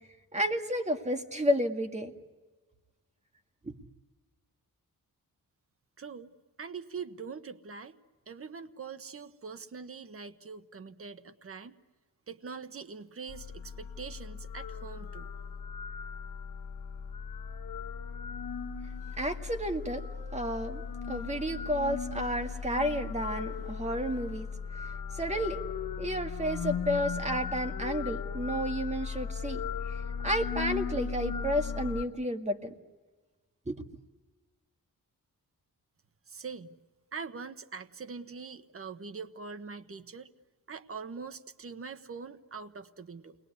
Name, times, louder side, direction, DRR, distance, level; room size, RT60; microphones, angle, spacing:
voice 1, 0.3-2.1 3.6-3.8 19.2-20.1 20.3-20.8 21.1-24.5 25.1-25.6 26.0-29.6 29.9-32.7 33.7-33.9, equal, 20° right, 5 dB, 2.0 m, -31 dB
voice 2, 6.0-6.3 6.6-8.0 8.3-11.8 12.3-15.3 36.3-36.7 37.1-40.3 40.7-43.4, right 5 dB, 40° right, 10 dB, 1.2 m, -43 dB
sound 1, 13.3-32.0, left 6 dB, 75° left, 1.6 m, -37 dB
29.5 x 21.0 x 9.6 m, 1.3 s
wide cardioid pair, 135°, 34 cm